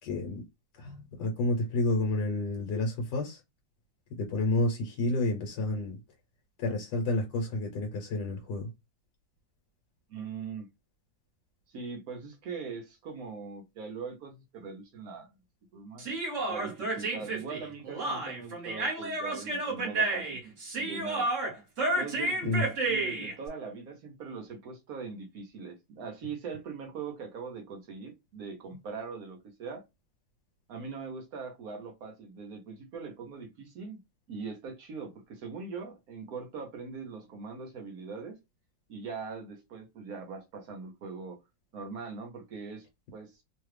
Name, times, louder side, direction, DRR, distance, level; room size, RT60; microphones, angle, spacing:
voice 1, 0.0-0.4 0.8-3.4 4.1-6.0 6.6-8.7 22.4-22.6, left 2 dB, 65° left, 1.4 m, -30 dB
voice 2, 10.1-10.7 11.7-15.3 15.7-16.1 16.5-20.4 20.8-21.3 22.0-29.9 30.7-34.0 34.3-38.4 38.9-41.4 41.7-42.9 43.1-43.4, right 5 dB, 60° right, 1.0 m, -41 dB
Human voice, 16.0-23.3, right 2 dB, 45° right, 1.4 m, -31 dB
3.1 x 2.3 x 3.2 m
omnidirectional pair, 2.1 m